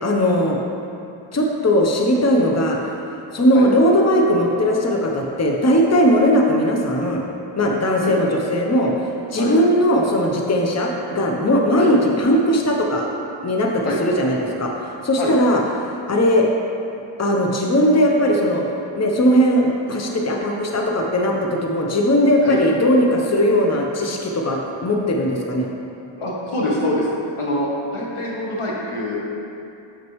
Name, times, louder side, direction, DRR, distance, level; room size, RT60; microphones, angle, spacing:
voice 1, 0.0-0.6 1.3-2.8 3.3-7.2 7.6-8.9 9.3-13.1 13.4-15.6 16.1-16.4 17.2-18.6 18.9-25.7, equal, 35° left, 0 dB, 0.7 m, -18 dB
voice 2, 26.2-27.1 27.4-29.3, left 1 dB, 90° left, -4 dB, 1.2 m, -25 dB
6.6 x 6.3 x 3.1 m, 2.7 s
wide cardioid pair, 50°, 49 cm